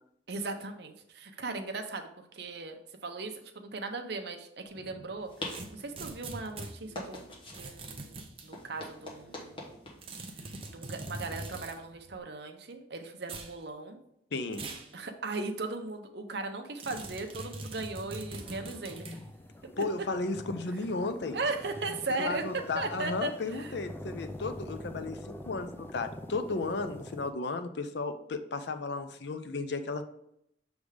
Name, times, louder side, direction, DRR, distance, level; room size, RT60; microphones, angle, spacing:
voice 1, 0.3-7.2 7.5-9.6 10.7-14.0 14.9-19.1 21.3-23.7, right 3 dB, 60° right, 5 dB, 0.7 m, -37 dB
sound 1, 4.6-12.2, left 1 dB, 25° left, 1.1 m, -47 dB
sound 2, 5.5-6.7 7.5-8.5 10.0-11.8 13.2-13.5 14.5-14.9 15.3-15.4 16.8-19.2, right 2 dB, 30° right, 0.6 m, -42 dB
voice 2, 14.3-14.6 19.8-21.4 22.2-30.0, left 3 dB, 65° left, 9 dB, 0.5 m, -34 dB
sound 3, 18.1-27.3, left 1 dB, 10° left, 0.3 m, -45 dB
6.5 x 3.5 x 4.9 m, 0.76 s
head